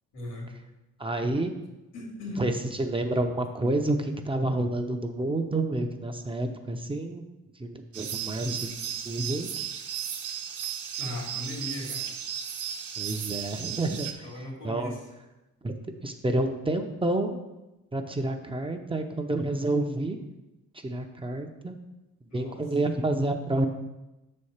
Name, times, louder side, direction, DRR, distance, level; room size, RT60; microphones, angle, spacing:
voice 1, 0.1-0.5 1.9-2.5 11.0-12.0 14.2-15.0 22.3-22.6, left 1 dB, 85° left, -1 dB, 2.5 m, -37 dB
voice 2, 1.0-1.5 2.4-2.5 2.8-7.2 7.6-9.7 13.0-14.3 14.6-15.0 15.6-15.8 16.0-17.4 17.9-20.2 20.8-21.8 22.3-23.7, right 2 dB, 15° right, 4 dB, 0.7 m, -29 dB
sound 1, 7.9-14.1, right 8 dB, 75° right, 0.9 m, -35 dB
6.3 x 4.3 x 6.5 m, 1.0 s
cardioid pair, 90°, 30 cm